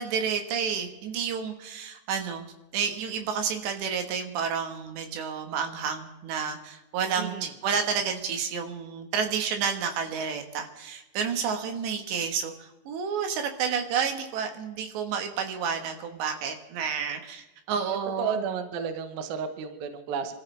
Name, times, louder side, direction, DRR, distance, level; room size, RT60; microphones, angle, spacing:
voice 1, 0.0-18.4, right 6 dB, 85° right, 5 dB, 3.9 m, -30 dB
voice 2, 7.2-7.5 17.9-20.3, right 6 dB, 70° right, 7 dB, 2.8 m, -32 dB
26.5 x 14.0 x 3.4 m, 1.0 s
omnidirectional pair, 4.9 m